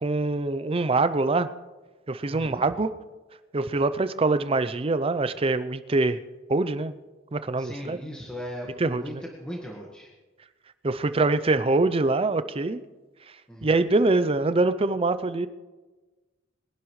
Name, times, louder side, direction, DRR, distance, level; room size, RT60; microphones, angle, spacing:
voice 1, 0.0-1.5 2.1-2.9 3.5-6.2 6.5-6.9 7.3-8.0 8.8-9.0 10.8-12.8 13.6-15.5, right 3 dB, 30° right, 12 dB, 0.5 m, -24 dB
voice 2, 2.3-2.6 7.6-10.1 13.5-13.8, equal, 5° left, -3 dB, 1.6 m, -38 dB
22.5 x 11.0 x 3.2 m, 1.2 s
head